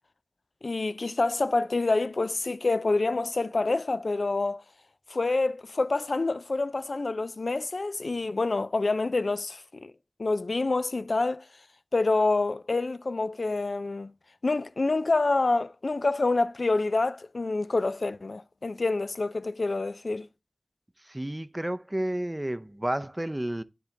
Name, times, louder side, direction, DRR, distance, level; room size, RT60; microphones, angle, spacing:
voice 1, 0.6-4.6 5.1-9.9 10.2-11.4 11.9-14.1 14.4-20.3, left 3 dB, 85° left, 0.3 m, -27 dB
voice 2, 21.1-23.6, right 1 dB, 25° right, 0.5 m, -31 dB
10.0 x 3.7 x 3.2 m
wide cardioid pair, 60°, 0 cm